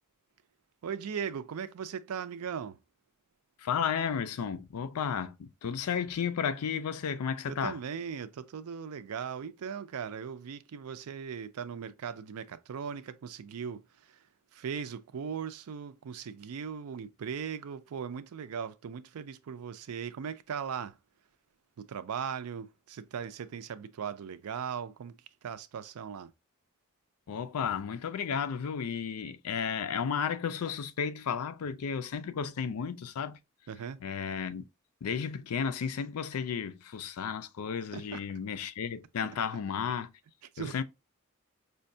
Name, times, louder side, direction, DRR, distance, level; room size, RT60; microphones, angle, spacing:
voice 1, 0.8-2.8 7.5-14.3 14.5-21.0 21.8-26.3 33.7-34.0 37.9-38.2 39.5-39.6 40.5-40.8, right 7 dB, 85° right, 0.4 m, -38 dB
voice 2, 3.6-7.8 27.3-33.4 34.0-34.6 35.0-40.1 40.6-40.8, left 7 dB, 90° left, 0.4 m, -33 dB
4.9 x 2.2 x 2.6 m
head